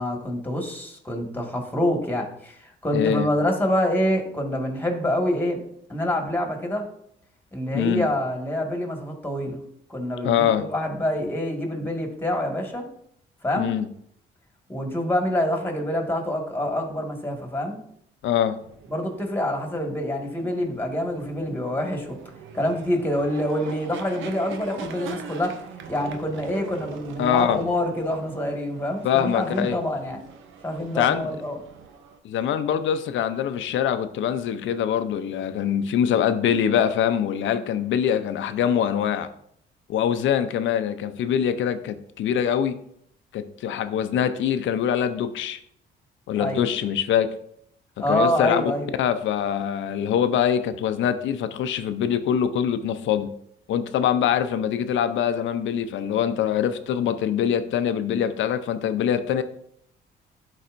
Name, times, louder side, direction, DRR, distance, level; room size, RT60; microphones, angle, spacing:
voice 1, 0.0-5.6 5.9-6.8 7.5-9.6 9.9-12.8 13.4-13.7 14.7-17.8 18.9-22.2 22.5-25.6 25.9-30.2 30.6-31.6 46.4-46.6 48.0-48.9, left 1 dB, 10° left, 2 dB, 1.8 m, -26 dB
voice 2, 2.9-3.3 7.7-8.1 10.2-10.7 13.6-13.9 18.2-18.6 27.2-27.6 29.0-29.8 31.0-31.3 32.2-39.3 39.9-42.7 43.3-45.6 46.3-47.3 48.1-48.6 49.0-53.3 53.7-59.4, left 9 dB, 75° left, 10 dB, 0.6 m, -23 dB
sound 1, 18.6-32.2, right 6 dB, 80° right, 0.7 m, -42 dB
11.5 x 4.1 x 2.6 m, 0.70 s
cardioid pair, 90°, 20 cm